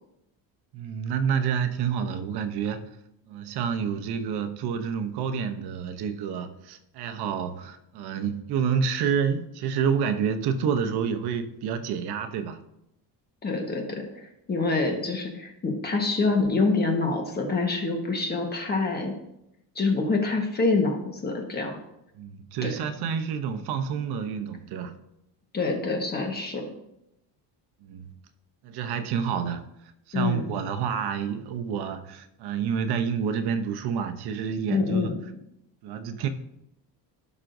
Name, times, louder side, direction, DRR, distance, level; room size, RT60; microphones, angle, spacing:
voice 1, 0.7-2.8 3.3-12.6 22.2-25.0 27.8-28.1 28.6-35.1 35.8-36.3, right 7 dB, 65° right, 0.8 m, -28 dB
voice 2, 13.4-19.1 19.7-21.8 22.6-22.7 25.5-26.7 30.1-30.5 34.7-35.2, left 3 dB, 25° left, 1.3 m, -26 dB
16.0 x 6.0 x 2.6 m
cardioid pair, 165°, 42 cm